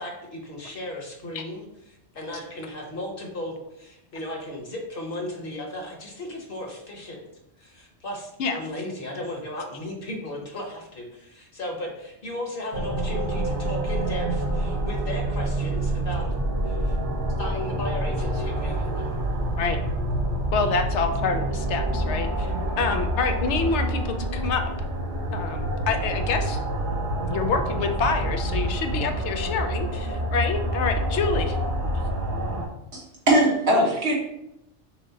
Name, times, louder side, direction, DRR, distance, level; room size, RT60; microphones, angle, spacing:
voice 1, 0.0-7.2 7.6-16.3 16.6-17.0 17.4-19.1 20.6-20.7, left 1 dB, 50° left, 0 dB, 1.2 m, -36 dB
sound 1, 12.7-32.7, right 1 dB, 50° right, 0.8 m, -27 dB
voice 2, 20.5-24.7 25.3-26.6 27.3-31.6, left 4 dB, 75° left, 6 dB, 0.8 m, -27 dB
voice 3, 32.9-34.1, right 1 dB, 65° right, -3 dB, 1.6 m, -21 dB
6.2 x 2.1 x 3.9 m, 0.82 s
omnidirectional pair, 1.2 m